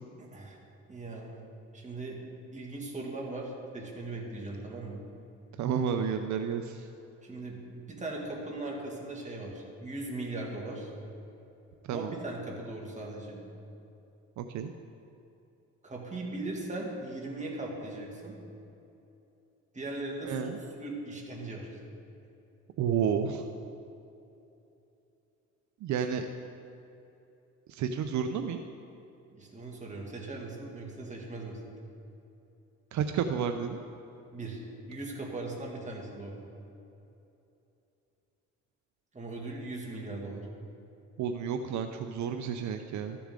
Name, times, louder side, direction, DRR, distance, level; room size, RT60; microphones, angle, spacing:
voice 1, 0.2-0.6 0.9-1.4 1.7-2.2 2.5-5.0 7.2-10.9 11.9-13.4 15.8-18.4 19.7-21.8 29.3-31.6 34.3-34.6 34.9-36.4 39.1-40.5, right 2 dB, 25° right, -2 dB, 2.1 m, -39 dB
voice 2, 5.6-6.9 11.8-12.2 14.4-14.7 20.2-20.6 22.8-23.5 25.8-26.3 27.7-28.6 32.9-33.8 41.2-43.2, right 7 dB, 70° right, 7 dB, 0.6 m, -31 dB
14.0 x 6.9 x 3.8 m, 2.8 s
cardioid pair, 90°, 30 cm